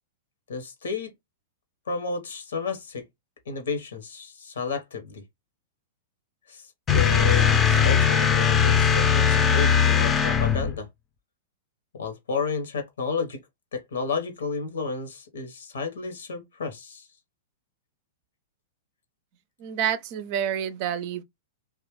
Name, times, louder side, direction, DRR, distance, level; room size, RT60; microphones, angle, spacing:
voice 1, 0.5-1.1 1.9-3.0 3.5-5.2 6.5-6.7 6.9-10.9 11.9-13.4 13.7-17.1, left 5 dB, 70° left, 1.0 m, -32 dB
sound 1, 6.9-10.8, left 7 dB, 20° left, 0.6 m, -20 dB
voice 2, 19.6-21.2, right 9 dB, 45° right, 0.5 m, -28 dB
3.1 x 2.4 x 2.9 m
figure-of-eight pair, 105°, 0 cm